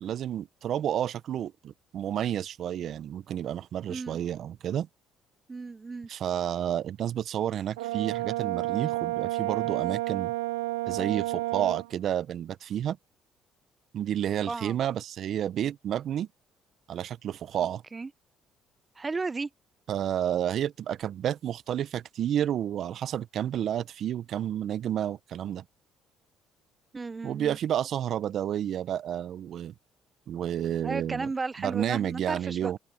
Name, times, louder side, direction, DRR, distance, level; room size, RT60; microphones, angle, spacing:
voice 1, 0.0-4.9 6.1-10.3 10.9-13.0 13.9-16.3 16.9-17.8 19.9-25.6 27.2-29.7 30.3-31.3 31.6-32.8, right 10 dB, 60° right, 0.9 m, -30 dB
voice 2, 3.9-4.2 5.5-6.1 14.5-14.8 17.9-18.1 19.0-19.5 26.9-27.6 30.8-32.7, right 4 dB, 30° right, 0.8 m, -34 dB
Brass instrument, 7.8-11.9, right 18 dB, 90° right, 0.3 m, -30 dB
hypercardioid pair, 60°, 0 cm